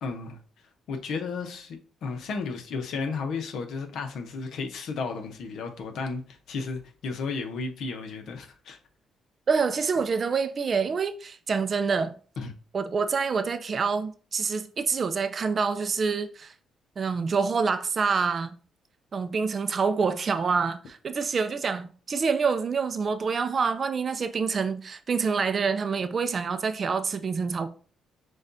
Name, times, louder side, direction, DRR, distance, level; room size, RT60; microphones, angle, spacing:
voice 1, 0.0-0.4 0.9-8.8 12.4-12.5, left 4 dB, 70° left, 0.8 m, -33 dB
voice 2, 9.5-12.1 12.7-16.5 17.0-18.6 19.1-27.7, right 5 dB, 45° right, 0.4 m, -27 dB
6.4 x 2.4 x 2.7 m
cardioid pair, 90°, 0 cm